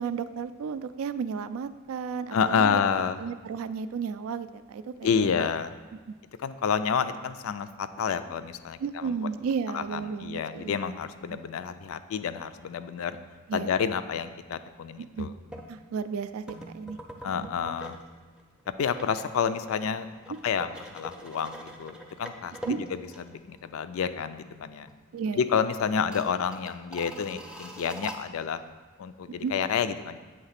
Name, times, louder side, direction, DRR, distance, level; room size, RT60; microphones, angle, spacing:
voice 1, 0.0-2.8 3.2-5.4 5.9-6.1 8.8-10.7 11.3-11.4 13.5-13.7 15.0-15.3 15.7-17.0 22.7-22.8 25.1-25.4 29.4-29.5, right 6 dB, 70° right, 12 dB, 0.3 m, -33 dB
voice 2, 2.3-3.2 5.0-5.7 6.4-9.3 9.7-13.2 13.5-15.3 17.2-18.0 18.7-20.1 20.4-24.9 25.3-28.6 29.0-30.2, left 6 dB, 70° left, 12 dB, 0.4 m, -29 dB
sound 1, 15.5-15.7 16.5-18.1 18.4-23.7 24.0-24.1 24.5-25.0 25.3-25.4 25.9-28.2, right 1 dB, 5° right, 0.5 m, -44 dB
7.8 x 3.3 x 5.7 m, 1.3 s
head